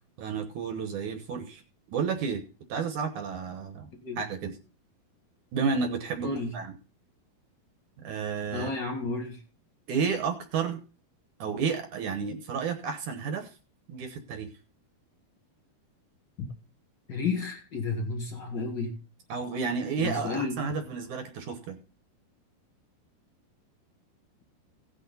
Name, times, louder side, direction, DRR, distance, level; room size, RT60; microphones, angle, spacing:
voice 1, 0.2-1.6 1.9-2.4 2.7-3.9 4.2-4.5 5.5-6.7 8.0-8.7 9.9-10.8 11.4-13.5 13.9-14.5 19.3-21.8, right 5 dB, 65° right, 2.2 m, -31 dB
voice 2, 6.2-6.5 8.5-9.4 17.1-19.0 20.0-20.5, left 3 dB, 40° left, 1.8 m, -31 dB
17.0 x 6.5 x 4.0 m
omnidirectional pair, 4.4 m